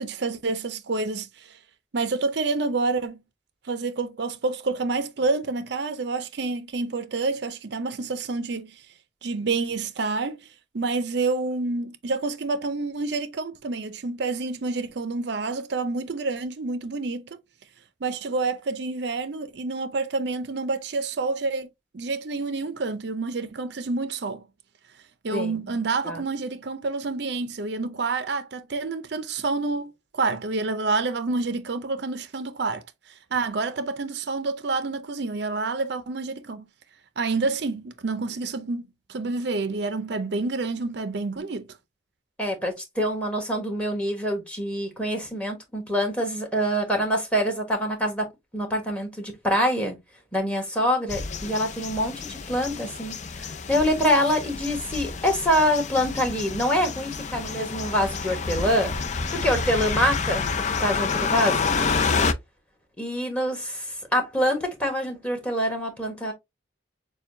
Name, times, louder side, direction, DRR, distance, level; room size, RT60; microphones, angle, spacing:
voice 1, 0.0-1.6 1.9-3.2 3.7-8.8 9.2-10.4 10.7-17.4 18.0-21.7 21.9-24.4 25.2-32.8 33.3-36.7 37.2-41.6, right 3 dB, 55° right, 0.5 m, -28 dB
voice 2, 25.3-25.7 26.0-26.2 42.4-48.3 48.5-50.0 50.3-58.9 59.3-61.7 63.0-66.3, equal, 5° left, 1.3 m, -25 dB
sound 1, 51.1-62.3, left 5 dB, 35° left, 0.4 m, -29 dB
6.7 x 2.3 x 2.7 m
head